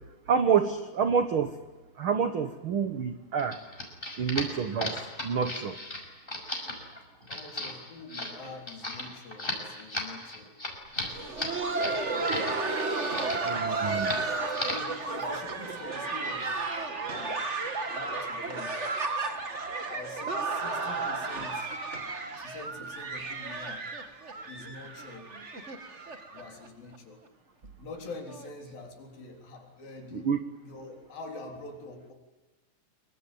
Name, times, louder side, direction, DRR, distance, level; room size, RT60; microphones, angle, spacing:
voice 1, 0.3-1.6 2.0-3.6 4.2-5.8 13.4-14.1 30.1-30.4, right 6 dB, 75° right, 9 dB, 1.2 m, -28 dB
sound 1, 3.4-12.5 12.8-13.6 13.9-14.2 14.5-14.9, left 1 dB, 15° left, 5.7 m, -35 dB
voice 2, 7.3-10.5 12.8-14.2 14.7-16.6 17.1-17.5 17.9-18.7 19.9-21.8 22.4-23.9 24.3-25.7 26.3-27.3 27.8-30.3 30.6-32.1, left 3 dB, 75° left, 2 dB, 5.5 m, -45 dB
Laughter, 11.0-26.7 26.9-27.0 27.6-27.7 28.3-28.5 29.6-29.7, right 3 dB, 30° right, 1.4 m, -33 dB
26.0 x 23.5 x 9.2 m, 1.2 s
omnidirectional pair, 4.2 m